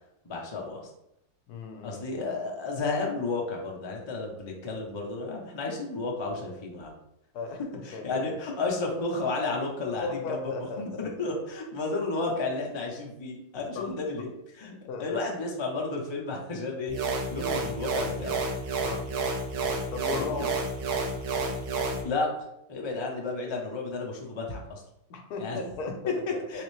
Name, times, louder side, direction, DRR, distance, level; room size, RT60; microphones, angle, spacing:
voice 1, 0.2-0.8 1.8-7.0 7.8-14.7 15.0-18.4 20.1-20.5 22.0-22.4 22.7-24.8 25.4-25.6 26.5-26.6, left 3 dB, 45° left, -1 dB, 0.3 m, -32 dB
voice 2, 1.5-2.0 7.3-7.6 7.9-8.1 10.0-11.0 13.7-13.9 14.9-15.2 18.8-19.0 19.9-20.5 25.1-26.6, left 4 dB, 75° left, 4 dB, 1.1 m, -36 dB
sound 1, 16.9-22.0, right 3 dB, 75° right, 1.2 m, -30 dB
3.5 x 3.3 x 3.2 m, 0.81 s
omnidirectional pair, 1.7 m